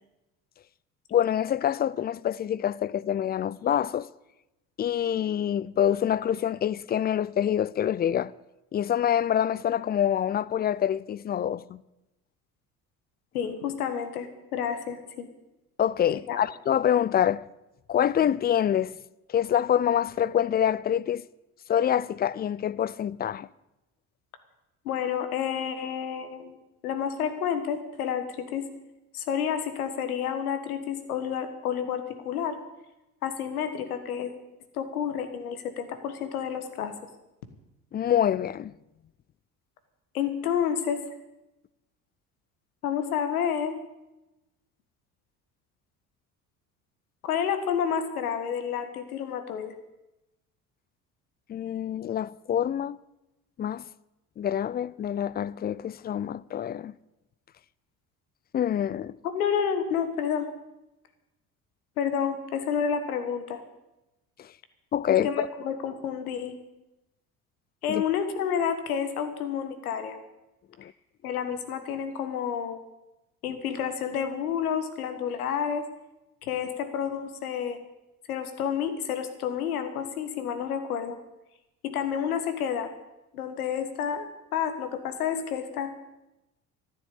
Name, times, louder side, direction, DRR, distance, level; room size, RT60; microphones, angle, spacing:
voice 1, 1.1-4.1 4.8-8.3 8.7-11.8 15.8-17.4 17.9-18.9 19.3-21.2 21.7-23.5 37.9-38.7 51.5-53.0 53.6-53.8 54.4-56.9 58.5-59.2 64.4-64.5 64.9-65.5 67.9-68.0 70.8-70.9, left 10 dB, 25° left, 0.4 m, -26 dB
voice 2, 13.3-15.3 16.3-16.4 24.8-26.6 26.8-28.6 29.1-32.6 33.2-34.3 34.7-36.9 40.1-41.0 42.8-43.7 47.2-49.7 59.2-60.5 62.0-63.6 65.1-66.6 67.8-70.2 71.2-72.8 73.4-75.8 76.4-77.8 78.3-81.2 81.8-82.9 83.3-86.0, left 8 dB, 80° left, 1.7 m, -30 dB
14.0 x 9.5 x 8.5 m
hypercardioid pair, 60°, 43 cm